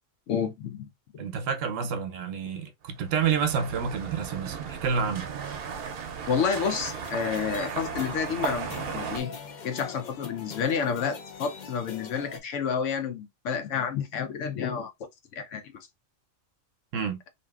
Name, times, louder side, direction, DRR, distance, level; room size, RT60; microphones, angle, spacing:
voice 1, 0.3-0.9 1.1-1.2 6.3-9.3 9.6-14.9 15.4-15.6, left 6 dB, 75° left, 1.0 m, -30 dB
voice 2, 1.2-5.3 16.9-17.2, right 6 dB, 85° right, 1.0 m, -29 dB
sound 1, 2.9-9.2, right 6 dB, 60° right, 0.7 m, -36 dB
sound 2, 6.6-12.4, left 5 dB, 55° left, 0.5 m, -42 dB
2.7 x 2.6 x 2.3 m
omnidirectional pair, 1.3 m